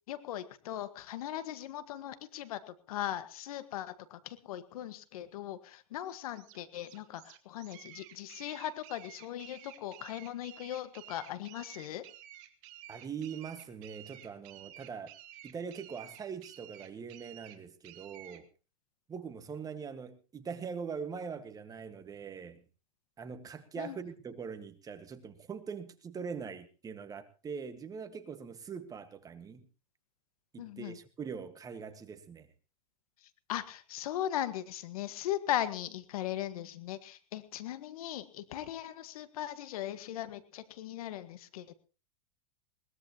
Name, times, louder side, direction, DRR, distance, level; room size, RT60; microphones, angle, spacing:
voice 1, 0.1-12.0 23.8-24.0 30.6-31.0 33.5-41.7, left 12 dB, 70° left, 1.6 m, -38 dB
sound 1, 6.0-18.4, right 13 dB, 45° right, 1.9 m, -53 dB
voice 2, 12.9-15.1 15.4-18.5 19.1-22.6 23.2-29.6 30.5-32.5, right 6 dB, 20° right, 1.6 m, -42 dB
21.0 x 18.0 x 3.0 m
supercardioid pair, 130°, 19 cm